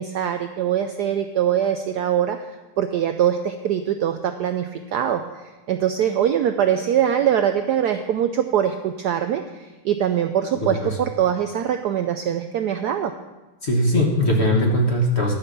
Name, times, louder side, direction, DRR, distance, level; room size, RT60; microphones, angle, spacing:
voice 1, 0.0-2.4 2.8-5.2 5.7-13.1, right 9 dB, 90° right, 7 dB, 0.8 m, -22 dB
voice 2, 10.6-11.0 13.6-15.3, left 1 dB, 35° left, 0 dB, 1.4 m, -20 dB
11.5 x 5.7 x 6.6 m, 1.1 s
omnidirectional pair, 2.3 m